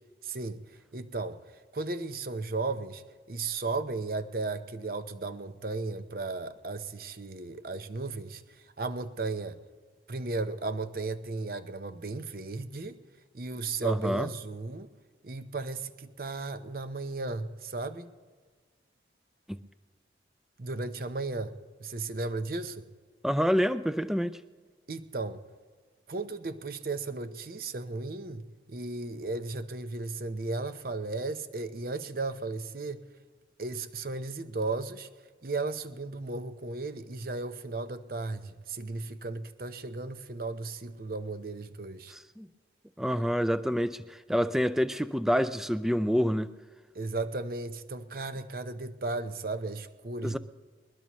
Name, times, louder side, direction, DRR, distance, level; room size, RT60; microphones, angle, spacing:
voice 1, 0.2-0.6 0.9-1.4 1.7-3.0 3.3-8.4 8.8-9.6 10.1-13.0 13.3-14.9 15.2-18.1 20.6-22.9 24.9-25.4 26.1-33.0 33.6-35.1 35.4-42.1 43.1-43.2 46.9-50.4, right 3 dB, 55° right, 0.8 m, -35 dB
voice 2, 13.8-14.3 19.5-19.6 23.2-24.4 42.1-42.5 43.0-46.5 50.2-50.4, equal, ahead, 0.4 m, -27 dB
21.0 x 21.0 x 3.1 m
head